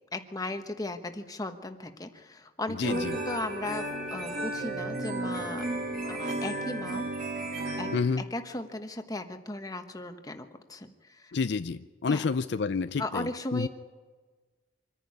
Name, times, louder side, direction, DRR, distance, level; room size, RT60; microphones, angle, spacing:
voice 1, 0.1-5.7 6.1-7.0 7.8-11.4 12.1-12.2 13.0-13.7, left 2 dB, 20° left, 7 dB, 1.2 m, -36 dB
voice 2, 2.8-3.2 7.9-8.2 11.3-13.7, left 4 dB, 65° left, 12 dB, 0.5 m, -29 dB
sound 1, 2.8-8.0, right 1 dB, 55° right, 4.0 m, -33 dB
25.0 x 10.5 x 9.6 m, 1.4 s
head